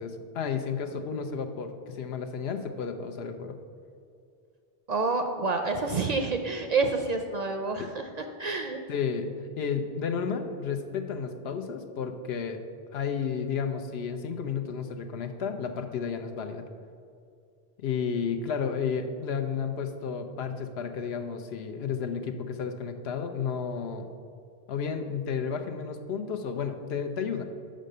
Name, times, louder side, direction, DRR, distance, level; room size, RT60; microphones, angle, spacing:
voice 1, 0.0-3.5 8.9-9.3 9.6-12.6 12.9-16.6 17.8-24.1 24.7-27.4, left 6 dB, 80° left, 6 dB, 0.9 m, -32 dB
voice 2, 4.9-8.1 8.4-8.8, right 3 dB, 55° right, 6 dB, 0.5 m, -28 dB
6.4 x 5.1 x 6.5 m, 2.4 s
omnidirectional pair, 1.1 m